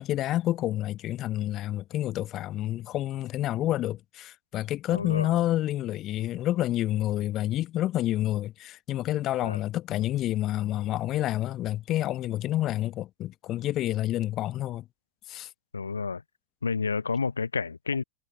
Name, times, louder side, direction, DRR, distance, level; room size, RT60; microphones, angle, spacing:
voice 1, 0.0-14.8 15.3-15.5, left 14 dB, 35° left, 1.1 m, -29 dB
voice 2, 4.9-5.4 9.4-9.6 15.7-16.2 16.6-18.0, left 5 dB, 75° left, 0.8 m, -30 dB
figure-of-eight pair, 90°, 0 cm